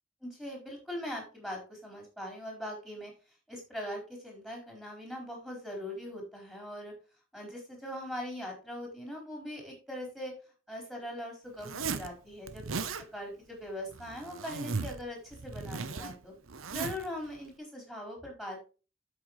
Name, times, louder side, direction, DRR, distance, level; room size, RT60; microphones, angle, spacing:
voice 1, 0.2-3.1 3.5-6.9 7.3-10.3 10.7-12.8 13.1-16.3 16.7-18.7, left 1 dB, ahead, -1 dB, 4.3 m, -41 dB
Zipper (clothing), 11.6-12.1 12.5-13.0 13.9-15.0 15.3-17.1, right 4 dB, 80° right, 0.9 m, -37 dB
9.3 x 7.8 x 3.2 m, 0.33 s
head